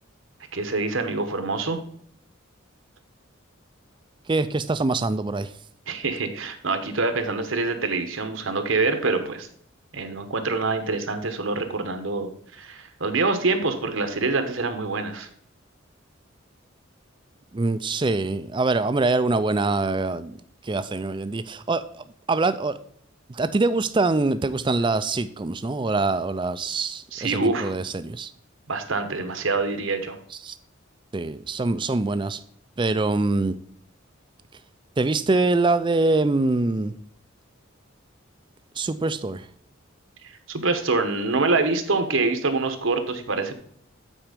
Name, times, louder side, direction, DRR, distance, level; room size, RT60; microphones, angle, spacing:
voice 1, 0.5-1.8 5.9-9.5 9.9-15.3 27.1-27.7 28.7-30.2 40.5-43.5, right 3 dB, 75° right, 8 dB, 1.1 m, -25 dB
voice 2, 4.3-5.5 17.5-20.3 20.6-22.8 23.3-28.3 30.3-30.5 31.1-32.4 32.8-33.6 35.0-36.9 38.8-39.5, right 3 dB, 25° right, 13 dB, 0.4 m, -24 dB
8.9 x 4.5 x 5.1 m, 0.62 s
head